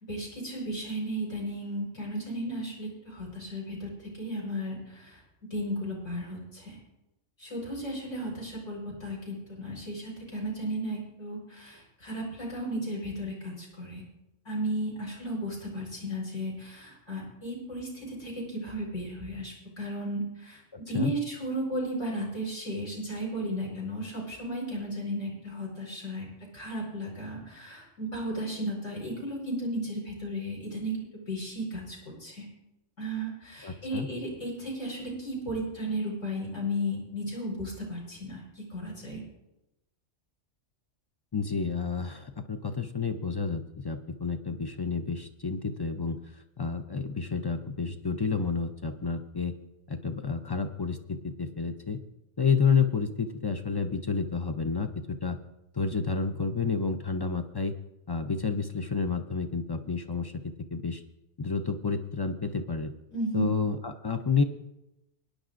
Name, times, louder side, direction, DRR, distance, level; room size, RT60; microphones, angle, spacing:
voice 1, 0.1-5.2 5.5-6.8 7.4-14.0 14.4-20.6 20.9-26.3 26.5-32.4 33.0-39.2 63.1-63.4, equal, 75° left, -4 dB, 4.9 m, -34 dB
voice 2, 20.7-21.1 33.6-34.1 41.3-46.2 46.6-49.6 49.9-52.0 52.4-55.4 55.7-57.7 58.1-61.0 61.4-62.9 63.3-64.4, left 5 dB, 40° left, 7 dB, 0.3 m, -30 dB
23.5 x 10.5 x 2.5 m, 0.91 s
omnidirectional pair, 1.3 m